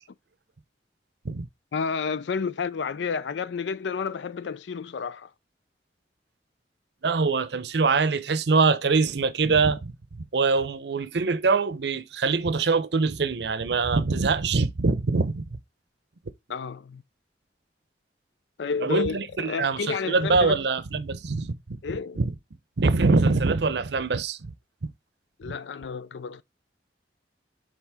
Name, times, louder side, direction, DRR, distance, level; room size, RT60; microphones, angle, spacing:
voice 1, 1.7-5.3 16.5-17.0 18.6-20.7 21.8-22.2 25.4-26.4, left 5 dB, 80° left, 0.4 m, -30 dB
voice 2, 7.0-15.5 18.8-21.8 22.2-22.3 22.8-24.5 25.4-25.5, right 4 dB, 65° right, 0.7 m, -24 dB
7.3 x 4.0 x 3.4 m
head